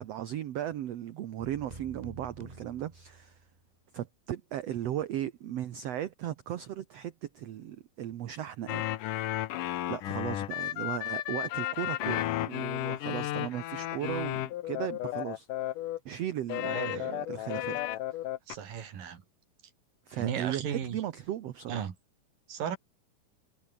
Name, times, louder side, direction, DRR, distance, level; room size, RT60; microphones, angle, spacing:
voice 1, 0.0-3.4 3.9-8.9 9.9-15.5 16.1-17.8 20.1-21.9, right 11 dB, 60° right, 1.9 m, -36 dB
sound 1, 1.4-3.6, right 3 dB, 25° right, 0.9 m, -48 dB
sound 2, 8.7-16.0 16.5-18.6, left 14 dB, 80° left, 2.6 m, -33 dB
voice 2, 16.6-17.1 18.5-19.2 20.1-21.0 21.7-21.9 22.5-22.8, right 8 dB, 80° right, 4.4 m, -35 dB
omnidirectional pair, 3.8 m